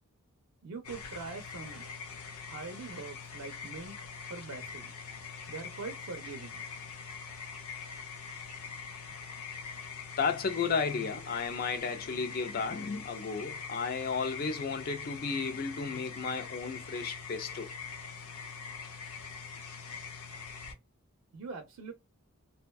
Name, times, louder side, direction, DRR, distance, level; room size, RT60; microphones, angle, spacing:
voice 1, 0.6-1.9 2.4-4.0 4.3-4.9 5.5-6.6 21.3-21.9, right 4 dB, 80° right, 0.5 m, -43 dB
sound 1, 0.8-20.7, left 6 dB, 85° left, 0.6 m, -43 dB
voice 2, 10.2-17.7, left 5 dB, 40° left, 0.4 m, -33 dB
2.5 x 2.2 x 2.3 m
head